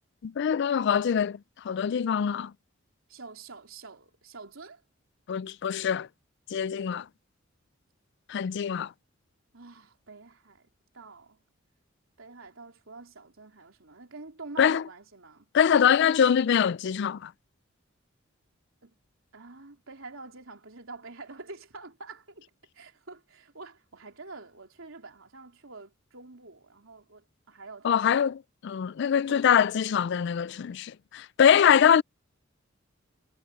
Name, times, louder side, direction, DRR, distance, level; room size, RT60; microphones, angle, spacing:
voice 1, 0.2-1.4 1.6-2.5 5.3-6.1 6.5-7.1 8.3-8.9 14.6-14.8 15.5-17.3 27.8-32.0, left 8 dB, 60° left, 0.3 m, -23 dB
voice 2, 3.1-4.8 9.5-10.7 10.9-11.4 12.2-15.5 18.8-18.9 19.3-28.3 29.3-29.5, right 3 dB, 85° right, 3.6 m, -47 dB
head